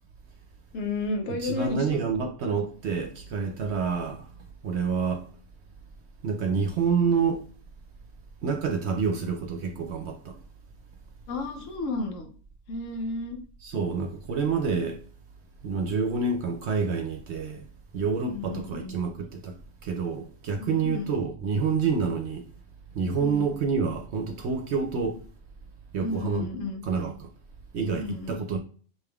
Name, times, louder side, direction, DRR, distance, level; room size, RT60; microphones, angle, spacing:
voice 1, 0.7-2.0 11.3-12.3 12.7-13.4 18.2-19.0 20.6-21.1 23.2-23.5 26.0-26.8 27.9-28.4, left 3 dB, 75° left, 1.1 m, -32 dB
voice 2, 1.4-4.2 4.6-5.2 6.2-7.4 8.4-10.3 13.6-15.0 15.6-17.6 17.9-19.5 19.8-22.4 23.0-25.2 25.9-26.5 26.8-27.3 27.7-28.6, right 5 dB, 65° right, 0.8 m, -28 dB
6.1 x 3.4 x 2.3 m
omnidirectional pair, 1.4 m